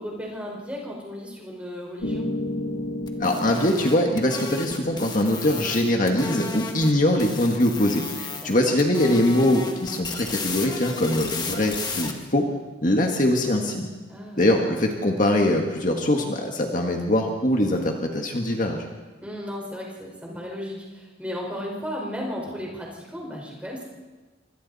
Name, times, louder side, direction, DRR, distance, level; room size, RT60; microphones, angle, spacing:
voice 1, 0.0-2.3 8.4-8.7 14.1-14.4 19.2-23.9, equal, 5° right, -2 dB, 4.8 m, -35 dB
Piano, 2.0-10.1, left 1 dB, 75° left, 2.6 m, -35 dB
sound 1, 3.1-6.9 7.2-8.5 8.8-12.1, left 4 dB, 20° left, 1.7 m, -34 dB
voice 2, 3.2-12.5 12.8-13.9 14.4-18.9, left 1 dB, 40° left, 2 dB, 1.7 m, -22 dB
27.5 x 24.5 x 4.2 m, 1.3 s
head